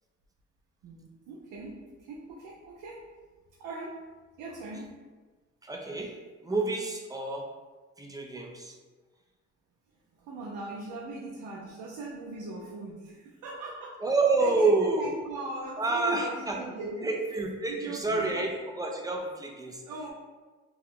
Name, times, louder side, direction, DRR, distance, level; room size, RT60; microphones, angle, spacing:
voice 1, 0.8-3.2 3.6-4.1 4.4-5.1 10.2-14.0 14.4-17.2 17.7-18.5 19.8-20.1, right 2 dB, 80° right, -4 dB, 0.6 m, -40 dB
voice 2, 5.6-6.2 6.4-7.5 8.0-8.8 14.0-15.1 15.8-16.6 17.0-19.8, right 3 dB, 10° right, 1 dB, 0.5 m, -28 dB
2.8 x 2.3 x 3.5 m, 1.3 s
cardioid pair, 90°, 30 cm